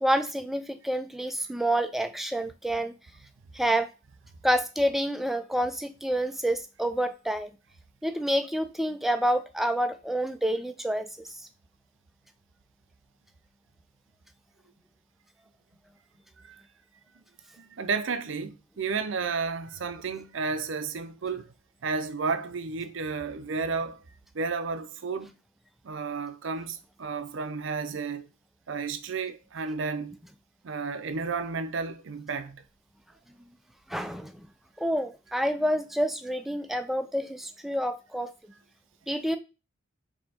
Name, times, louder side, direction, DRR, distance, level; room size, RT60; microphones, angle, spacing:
voice 1, 0.0-2.9 3.5-3.9 4.4-7.5 8.0-11.3 33.9-34.4 34.8-38.3 39.1-39.4, equal, ahead, 0.3 m, -28 dB
voice 2, 17.6-21.5 21.8-24.0 24.3-25.3 25.8-28.2 28.7-30.2 30.6-32.6, right 4 dB, 70° right, 0.6 m, -32 dB
4.4 x 2.8 x 4.2 m
head